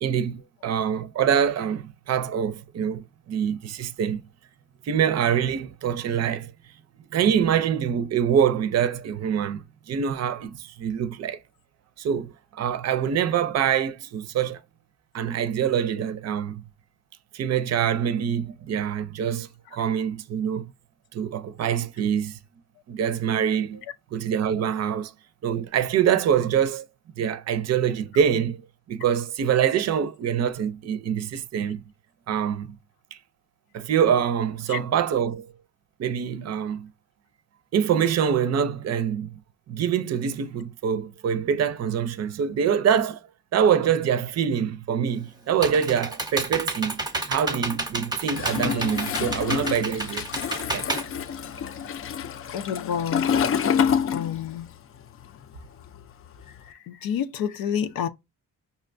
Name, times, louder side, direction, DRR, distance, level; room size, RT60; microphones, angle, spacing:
voice 1, 0.0-4.2 4.8-6.5 7.1-11.4 12.0-14.6 15.1-16.6 17.3-20.7 21.1-22.4 22.9-23.8 24.1-25.1 25.4-26.9 27.2-28.6 28.9-31.8 32.3-32.8 33.1-33.2 33.7-35.5 36.0-36.9 37.7-39.4 39.7-43.2 43.5-47.0 47.3-50.2 50.7-50.9, right 8 dB, 50° right, 0.5 m, -25 dB
Computer keyboard, 45.1-51.9, right 2 dB, 10° right, 0.7 m, -31 dB
Toilet flush, 48.3-54.8 55.0-56.6, left 7 dB, 40° left, 0.4 m, -28 dB
voice 2, 52.5-53.3 54.1-54.7 56.6-58.1, left 8 dB, 90° left, 0.6 m, -29 dB
5.3 x 2.2 x 2.5 m
cardioid pair, 90°, 34 cm